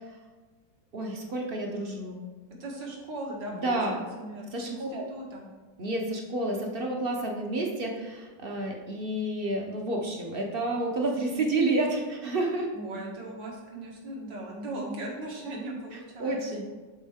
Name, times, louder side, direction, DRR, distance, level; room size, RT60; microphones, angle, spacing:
voice 1, 0.9-2.3 3.6-4.0 4.5-5.0 5.8-12.7 16.2-16.6, right 2 dB, 45° right, 1 dB, 0.7 m, -30 dB
voice 2, 2.6-5.5 12.7-16.6, right 2 dB, 80° right, -2 dB, 2.3 m, -38 dB
11.5 x 4.4 x 3.6 m, 1.3 s
omnidirectional pair, 1.9 m